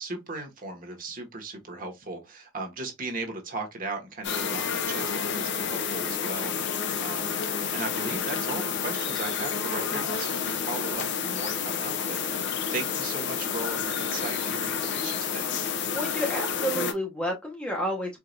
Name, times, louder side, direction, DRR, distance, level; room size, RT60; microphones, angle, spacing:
voice 1, 0.0-7.4 7.7-15.5, right 3 dB, 40° right, 1.2 m, -37 dB
sound 1, 4.2-16.9, left 6 dB, 55° left, 0.5 m, -30 dB
voice 2, 15.9-18.2, equal, 5° left, 0.8 m, -30 dB
4.7 x 2.5 x 2.6 m
head